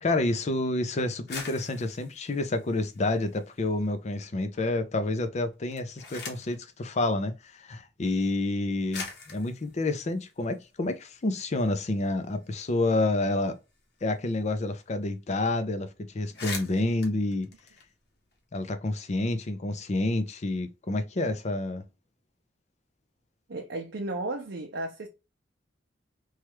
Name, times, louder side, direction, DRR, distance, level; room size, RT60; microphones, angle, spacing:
voice 1, 0.0-13.6 14.0-17.5 18.5-21.8, left 2 dB, 40° left, 0.5 m, -29 dB
sound 1, 1.1-3.7 4.1-4.7 5.5-6.6 7.7-7.8 8.5-8.6 8.9-11.2 11.6-11.7 11.9-14.6 14.8-14.9 15.2-15.5 15.8-15.9 16.2-18.4, left 4 dB, 60° left, 0.9 m, -43 dB
voice 2, 23.5-25.1, right 2 dB, 70° right, 0.6 m, -34 dB
3.1 x 2.3 x 2.9 m
head